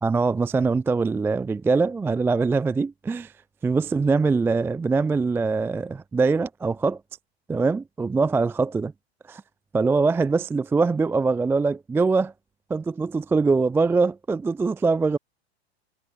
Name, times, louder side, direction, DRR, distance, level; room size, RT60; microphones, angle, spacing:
voice 1, 0.0-3.3 3.6-7.0 7.5-8.9 9.3-9.4 9.7-12.3 12.7-15.2, right 4 dB, 5° right, 0.4 m, -23 dB
hypercardioid pair, 105°, 32 cm